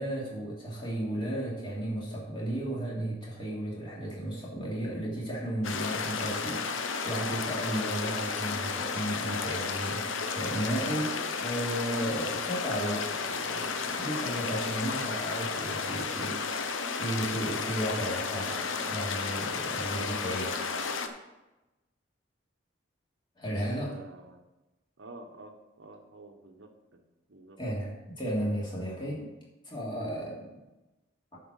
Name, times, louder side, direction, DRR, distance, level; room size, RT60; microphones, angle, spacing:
voice 1, 0.0-16.7 17.0-20.6 23.4-24.0 27.6-29.2 29.6-30.6, right 1 dB, 25° left, -6 dB, 2.9 m, -34 dB
sound 1, 5.6-21.1, left 5 dB, 85° left, 0.8 m, -33 dB
voice 2, 23.8-24.4 25.0-27.0 27.3-27.6, right 2 dB, 75° right, 4 dB, 1.0 m, -49 dB
10.5 x 4.7 x 6.4 m, 1.0 s
head